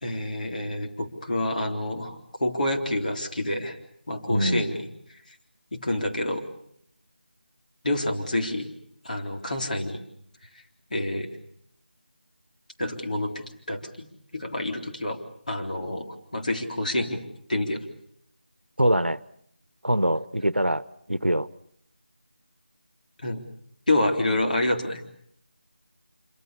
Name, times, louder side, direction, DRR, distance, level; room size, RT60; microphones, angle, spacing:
voice 1, 0.0-3.8 4.1-4.9 5.7-6.5 7.8-8.7 9.0-10.0 10.9-11.3 12.8-15.2 15.5-17.8 23.2-23.4 23.9-25.0, left 1 dB, 50° left, 2 dB, 3.9 m, -28 dB
voice 2, 4.3-4.7 18.8-19.2 19.8-21.5, right 1 dB, 90° right, 18 dB, 1.1 m, -24 dB
26.5 x 25.0 x 7.0 m, 0.69 s
figure-of-eight pair, 165°, 6 cm